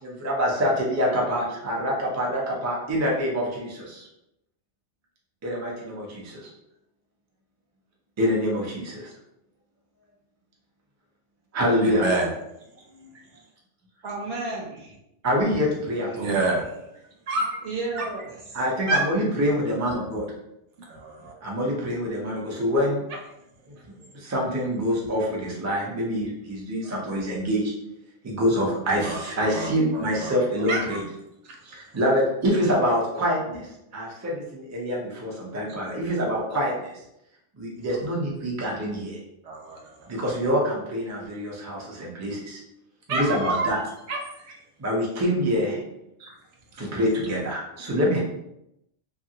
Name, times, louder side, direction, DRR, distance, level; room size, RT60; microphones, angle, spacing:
voice 1, 0.0-4.1 5.4-6.5 8.2-9.1 11.5-12.1 15.2-16.4 18.5-20.3 21.4-23.0 23.7-23.8 24.1-27.7 28.2-31.0 31.6-37.0 37.5-39.2 40.1-42.6 43.1-43.8 44.8-45.8 46.8-48.2, equal, 20° right, -2 dB, 0.4 m, -26 dB
voice 2, 11.8-12.3 12.9-13.1 16.2-16.7 17.3-17.6 18.0-18.1 18.9-19.1 20.9-21.3 29.0-30.4 30.7-31.0 31.4-31.6 39.4-40.1 43.1-43.7 44.1-44.2 46.2-46.3, right 2 dB, 85° right, 1 dB, 0.9 m, -28 dB
voice 3, 14.0-15.0 17.6-18.6, right 3 dB, 60° right, -2 dB, 1.0 m, -33 dB
2.9 x 2.4 x 2.7 m, 0.83 s
omnidirectional pair, 1.2 m